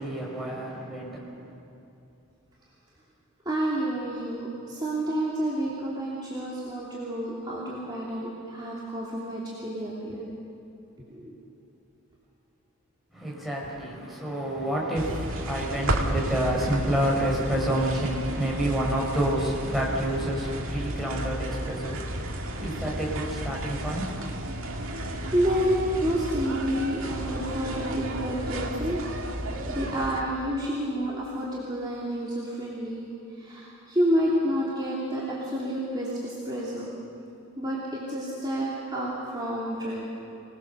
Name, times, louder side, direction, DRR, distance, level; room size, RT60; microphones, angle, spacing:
voice 1, 0.0-1.5 13.1-24.4, right 1 dB, ahead, -4 dB, 4.9 m, -29 dB
voice 2, 3.4-10.3 11.1-11.4 25.3-29.3 29.7-33.0 33.3-37.0 37.6-40.0, equal, 20° right, -7 dB, 3.0 m, -29 dB
sound 1, 14.9-30.2, right 1 dB, 70° right, 2.1 m, -33 dB
26.5 x 20.0 x 6.9 m, 2.9 s
head